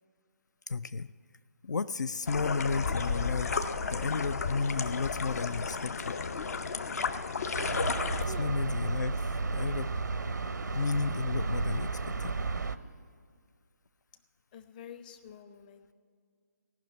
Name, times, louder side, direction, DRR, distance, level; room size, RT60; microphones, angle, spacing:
voice 1, 0.7-1.1 1.6-6.2 8.3-9.9 10.7-12.3, left 4 dB, 80° left, 14 dB, 0.4 m, -33 dB
sound 1, 2.3-8.2, left 5 dB, 60° left, 0.8 m, -33 dB
sound 2, 7.5-12.8, right 3 dB, 85° right, 0.6 m, -33 dB
voice 2, 8.2-8.8 14.5-15.9, left 6 dB, 30° left, 10 dB, 0.8 m, -48 dB
17.5 x 6.0 x 8.2 m, 2.1 s
figure-of-eight pair, 150°, 9 cm